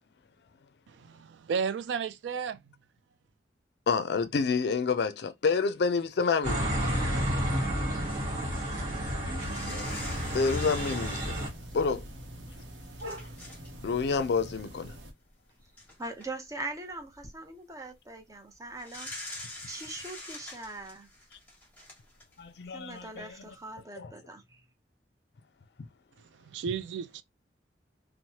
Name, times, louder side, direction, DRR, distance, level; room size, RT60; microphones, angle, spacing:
voice 1, 0.9-2.6 26.5-27.2, right 6 dB, 75° right, 0.3 m, -33 dB
voice 2, 3.9-6.8 9.7-10.0 10.3-11.4 11.7-12.0 13.8-14.9 22.4-23.5 24.0-24.1, left 5 dB, 60° left, 0.4 m, -29 dB
sound 1, 6.4-11.5, equal, 45° right, 1.3 m, -31 dB
sound 2, 9.3-12.0 12.6-12.7 13.0-13.7 14.0-14.2 15.3-15.4 15.8-16.3 17.0-17.3 18.8-22.4 22.9-23.0, left 1 dB, 10° left, 1.2 m, -44 dB
sound 3, 9.8-15.1, equal, 90° right, 0.8 m, -44 dB
voice 3, 16.0-19.1 19.7-21.1 22.7-24.6, right 2 dB, 20° right, 0.6 m, -41 dB
3.1 x 2.0 x 2.8 m
head